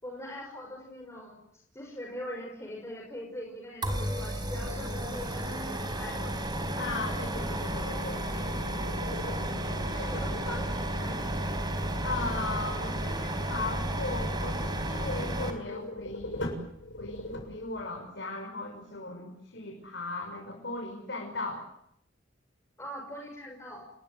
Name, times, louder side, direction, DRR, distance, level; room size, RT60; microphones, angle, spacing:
voice 1, 0.0-1.4 1.7-6.4 9.9-11.3 22.8-23.8, equal, 15° left, 0 dB, 5.9 m, -42 dB
sound 1, 3.8-15.5, right 1 dB, 25° right, 4.4 m, -32 dB
voice 2, 6.7-8.9 9.6-10.1 12.0-16.5 17.0-21.7, left 3 dB, 65° left, 0 dB, 6.1 m, -37 dB
sound 2, 8.8-11.1 15.6-17.9, left 1 dB, 85° left, 7.3 m, -40 dB
28.5 x 21.5 x 9.4 m, 0.75 s
head